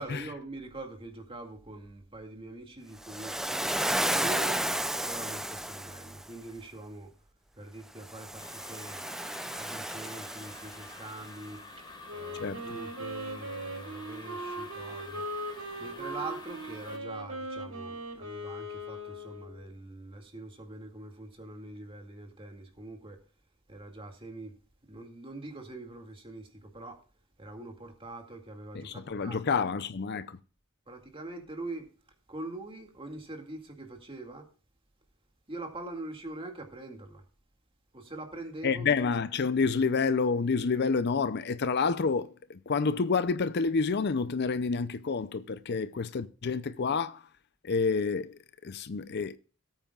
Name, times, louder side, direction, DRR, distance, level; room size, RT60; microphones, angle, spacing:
voice 1, 0.0-3.6 4.0-4.7 5.0-7.1 7.6-9.0 9.6-11.6 12.1-15.3 15.8-23.2 23.7-24.5 24.9-27.0 27.4-29.6 30.9-31.9 32.3-34.5 35.5-37.2 37.9-38.9, right 2 dB, 25° right, 2.2 m, -43 dB
Waves surf, 3.0-6.2 8.0-11.1, right 1 dB, ahead, 0.4 m, -33 dB
sound 1, 8.4-17.0, left 2 dB, 25° left, 4.2 m, -49 dB
Wind instrument woodwind instrument, 12.1-19.7, right 1 dB, 80° right, 4.0 m, -39 dB
voice 2, 12.3-12.7 28.7-30.4 38.6-47.2 47.6-49.4, left 5 dB, 50° left, 0.5 m, -29 dB
18.0 x 9.0 x 2.4 m
head